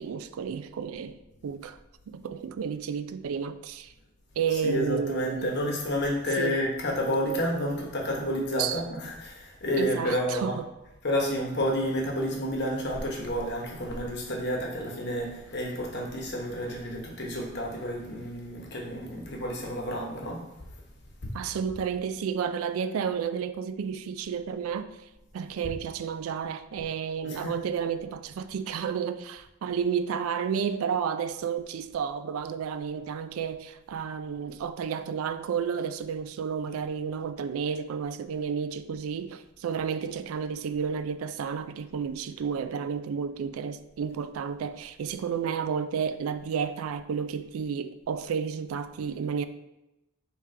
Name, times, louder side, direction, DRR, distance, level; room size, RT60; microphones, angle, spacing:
voice 1, 0.0-1.8 2.1-3.9 4.4-5.5 6.4-6.6 8.6-8.8 9.7-10.7 21.3-25.0 25.3-49.4, right 7 dB, 85° right, 0.3 m, -31 dB
voice 2, 4.5-10.6 11.0-20.4 21.2-21.3 25.6-25.7 27.2-27.6, equal, 55° left, 1.0 m, -30 dB
5.1 x 3.2 x 3.2 m
head